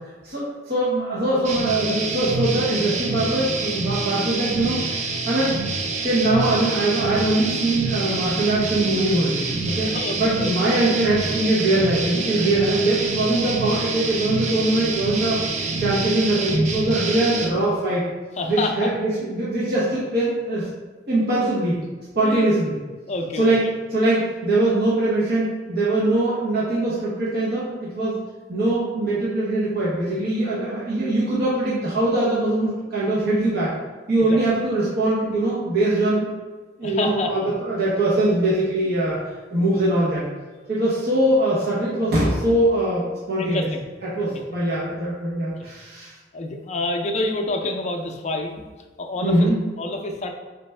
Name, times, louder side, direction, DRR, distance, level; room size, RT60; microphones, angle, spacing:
voice 1, 0.2-5.0 5.3-5.5 6.0-9.9 10.2-15.4 15.8-18.1 18.5-20.7 21.1-21.8 22.1-22.8 23.3-28.2 28.5-33.7 34.1-36.2 36.8-39.2 39.5-40.3 40.7-43.7 44.0-46.1 49.2-49.6, right 1 dB, 60° right, -8 dB, 0.9 m, -22 dB
sound 1, 1.4-17.5, right 3 dB, 40° right, 0.4 m, -27 dB
voice 2, 9.9-10.5 18.4-18.9 22.2-22.4 23.1-23.5 34.2-34.4 36.8-37.5 39.5-39.7 43.4-43.8 44.2-44.4 46.3-48.5 49.0-49.5 49.8-50.3, left 2 dB, 40° left, 2 dB, 0.5 m, -28 dB
4.0 x 3.3 x 3.3 m, 1.3 s
head